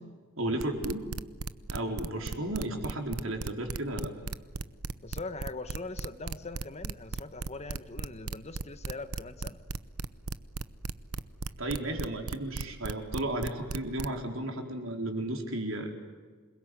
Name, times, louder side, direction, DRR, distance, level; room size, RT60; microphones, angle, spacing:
voice 1, 0.4-1.1 1.7-4.1 11.6-15.9, right 1 dB, 65° right, 3 dB, 4.4 m, -33 dB
sound 1, 0.6-14.1, right 3 dB, 85° right, 0.9 m, -35 dB
voice 2, 5.0-9.6, left 3 dB, 30° left, 10 dB, 1.3 m, -41 dB
28.0 x 21.5 x 9.6 m, 1.5 s
head